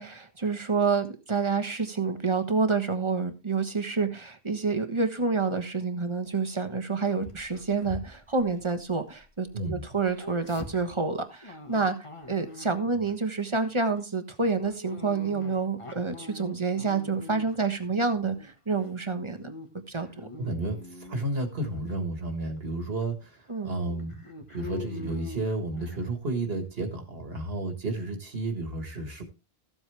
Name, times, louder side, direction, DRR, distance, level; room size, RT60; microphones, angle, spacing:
voice 1, 0.0-12.0 12.3-20.3 23.5-23.7, right 4 dB, 30° right, 8 dB, 1.4 m, -28 dB
Dog, 7.2-9.5 9.8-13.1 13.5-13.8 14.6-17.7 18.1-18.9 19.2-19.7 20.0-21.3 21.7-21.9 22.6-22.7 23.0-23.1 23.8-26.0, left 3 dB, 30° left, 1.6 m, -44 dB
voice 2, 20.4-29.2, right 2 dB, 70° right, 6 dB, 1.9 m, -32 dB
14.0 x 8.0 x 3.4 m, 0.30 s
omnidirectional pair, 1.0 m